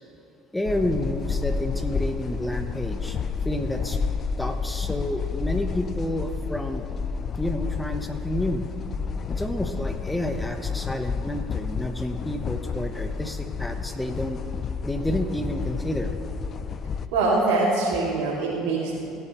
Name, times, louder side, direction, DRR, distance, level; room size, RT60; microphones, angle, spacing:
voice 1, 0.5-3.2 3.4-4.0 4.4-6.9 7.4-8.7 9.3-14.4 14.8-16.2, left 1 dB, 10° left, 7 dB, 1.0 m, -29 dB
sound 1, 0.7-17.1, left 5 dB, 45° left, 0.4 m, -30 dB
voice 2, 17.1-19.0, right 3 dB, 75° right, -8 dB, 2.4 m, -23 dB
16.5 x 9.7 x 3.1 m, 2.7 s
hypercardioid pair, 70°, 0 cm